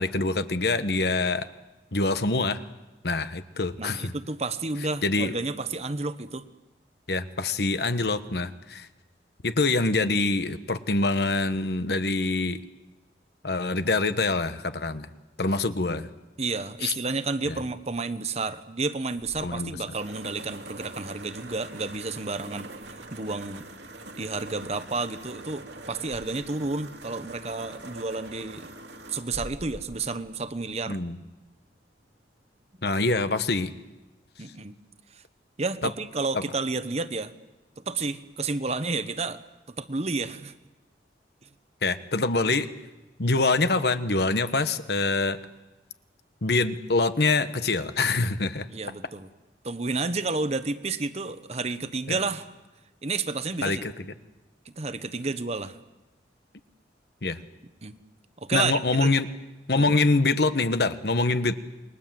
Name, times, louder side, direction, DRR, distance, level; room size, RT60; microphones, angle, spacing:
voice 1, 0.0-1.5 1.9-2.6 3.0-4.1 5.0-5.3 7.1-8.9 9.4-12.6 13.4-15.1 15.4-16.1 16.8-16.9 17.5-17.6 19.4-19.7 30.9-31.2 32.8-33.7 35.8-35.9 41.8-42.7 43.2-45.4 46.4-48.7 52.1-52.2 53.6-53.9 57.2-57.4 58.5-59.3 59.7-61.6, left 3 dB, 65° left, 11 dB, 1.2 m, -25 dB
voice 2, 3.8-6.4 16.4-23.6 24.2-28.7 29.1-31.0 34.4-34.8 35.1-35.2 35.6-37.3 37.8-39.4 39.8-40.5 48.7-49.3 49.6-52.5 53.0-53.9 54.8-55.8 57.8-57.9 58.4-59.2 59.8-60.0, right 3 dB, 35° right, 11 dB, 1.1 m, -31 dB
sound 1, 19.2-31.0, right 2 dB, 80° right, 2.5 m, -44 dB
28.5 x 21.5 x 7.7 m, 1.1 s
head